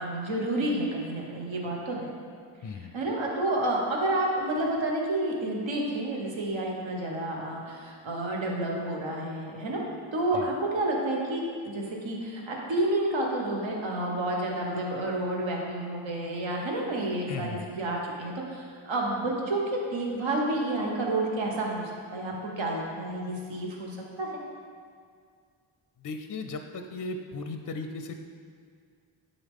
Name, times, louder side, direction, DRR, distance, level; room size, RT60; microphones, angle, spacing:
voice 1, 0.0-2.1 2.6-9.8 10.1-24.3, right 1 dB, 65° right, -2 dB, 1.3 m, -30 dB
voice 2, 17.3-17.7 26.0-28.1, left 3 dB, 40° left, 6 dB, 0.5 m, -36 dB
9.7 x 3.9 x 3.6 m, 2.1 s
cardioid pair, 65°, 49 cm